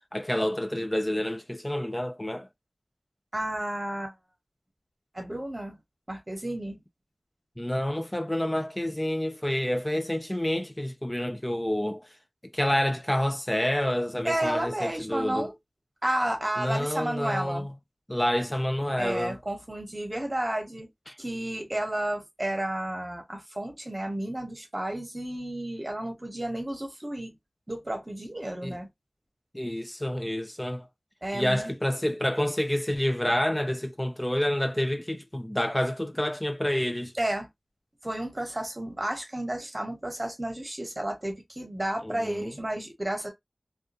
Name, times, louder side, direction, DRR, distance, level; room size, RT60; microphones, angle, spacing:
voice 1, 0.1-2.5 7.6-12.1 12.5-15.5 16.6-17.7 18.1-19.4 21.1-21.2 28.6-28.8 29.5-30.9 31.3-37.1 42.0-42.5, left 1 dB, 20° left, 0.3 m, -28 dB
voice 2, 3.3-4.1 5.1-5.8 6.1-6.8 14.2-15.5 16.0-17.7 19.0-20.9 21.2-27.4 27.7-28.9 31.2-31.7 37.2-37.5 38.0-43.3, right 1 dB, 30° right, 1.0 m, -32 dB
2.3 x 2.2 x 2.6 m
wide cardioid pair, 45°, 0 cm